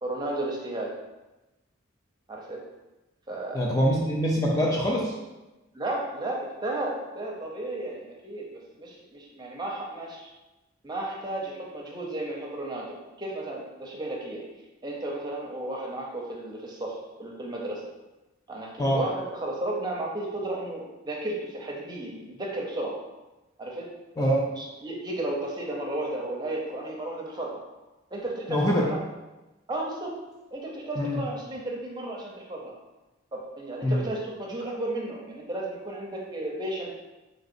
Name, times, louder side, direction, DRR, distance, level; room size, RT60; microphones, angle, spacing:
voice 1, 0.0-1.0 2.3-2.6 3.3-3.7 5.7-10.3 10.8-12.9 13.2-14.4 14.8-17.8 18.5-23.0 23.6-23.9 24.2-24.3 24.6-27.6 28.1-29.0 29.7-30.2 30.5-32.7 33.3-37.0, right 1 dB, 20° right, -2 dB, 0.6 m, -33 dB
voice 2, 3.5-5.1 18.8-19.0 24.2-24.5 28.5-28.9 31.0-31.2 33.8-34.1, equal, 20° left, -2 dB, 0.4 m, -24 dB
3.8 x 3.2 x 2.6 m, 1.1 s
head